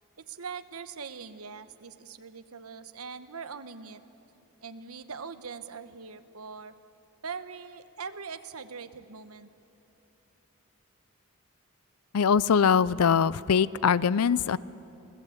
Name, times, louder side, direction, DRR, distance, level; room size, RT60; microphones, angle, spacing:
voice 1, 0.2-4.0 4.6-6.7 7.2-9.5, right 5 dB, 80° right, 11 dB, 1.0 m, -41 dB
voice 2, 12.1-14.6, left 6 dB, 85° left, 19 dB, 0.5 m, -22 dB
27.0 x 17.5 x 8.5 m, 2.9 s
head